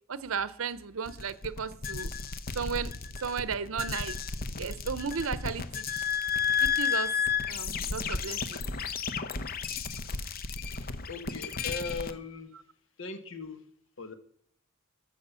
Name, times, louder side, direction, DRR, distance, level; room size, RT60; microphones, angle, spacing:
voice 1, 0.1-2.1 2.5-2.9 3.2-4.2 4.6-6.0 6.6-7.1 7.5-8.7, right 6 dB, 80° right, 0.6 m, -34 dB
sound 1, 1.1-12.1, left 6 dB, 45° left, 0.7 m, -32 dB
voice 2, 11.1-12.5 13.0-13.6 14.0-14.1, left 4 dB, 65° left, 1.4 m, -39 dB
13.5 x 6.6 x 5.6 m
head